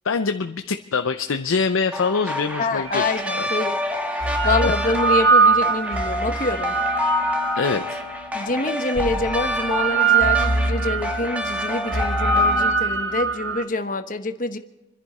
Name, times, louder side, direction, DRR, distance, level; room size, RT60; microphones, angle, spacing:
voice 1, 0.0-3.1 3.4-3.5 4.1-4.7 7.6-8.0, left 5 dB, 80° left, 7 dB, 0.6 m, -24 dB
sound 1, 1.9-12.7, left 1 dB, 5° right, 1.6 m, -28 dB
voice 2, 2.6-3.8 4.0-6.8 8.3-14.6, left 2 dB, 40° left, 8 dB, 1.0 m, -26 dB
sound 2, 2.9-3.0 3.9-8.2 9.0-13.6, right 4 dB, 75° right, 1.4 m, -22 dB
28.0 x 11.0 x 4.2 m, 1.0 s
head